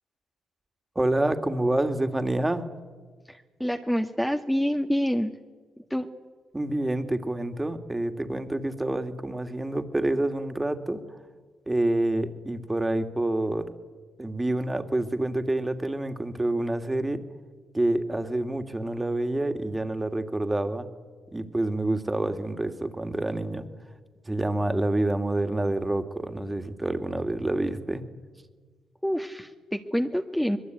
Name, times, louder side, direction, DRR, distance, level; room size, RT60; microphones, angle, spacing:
voice 1, 0.9-2.7 6.5-11.0 11.7-13.7 14.2-17.2 17.7-20.8 21.3-23.7 24.3-28.0, right 1 dB, 15° right, 8 dB, 2.7 m, -27 dB
voice 2, 3.3-5.3 5.9-6.1 29.0-30.6, equal, 5° left, 4 dB, 1.7 m, -27 dB
25.0 x 21.5 x 9.6 m, 1.4 s
supercardioid pair, 60°, 0 cm